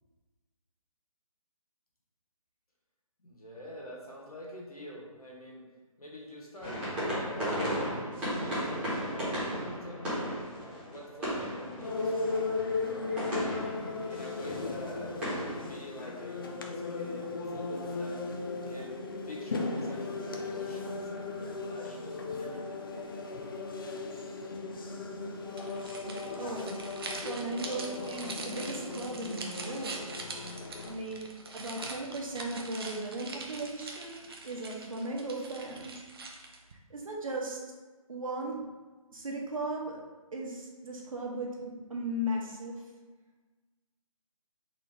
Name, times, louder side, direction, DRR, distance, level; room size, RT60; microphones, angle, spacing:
voice 1, 3.2-5.7 6.0-6.8 7.1-10.5 10.9-13.7 14.1-15.2 15.6-18.3 18.7-19.0 19.2-22.8, equal, 90° left, -3 dB, 1.3 m, -46 dB
sound 1, 6.6-15.7, equal, 5° right, 1.2 m, -35 dB
sound 2, 11.8-31.0, left 3 dB, 40° left, 0.4 m, -37 dB
sound 3, 25.5-36.7, right 3 dB, 40° right, 0.5 m, -43 dB
voice 2, 26.3-26.7 27.1-30.1 30.8-35.9 36.9-37.6 38.1-38.6 39.1-40.0 40.3-41.6 41.9-42.8, right 1 dB, 65° right, -1 dB, 1.0 m, -37 dB
3.9 x 2.8 x 3.5 m, 1.3 s
figure-of-eight pair, 150°, 19 cm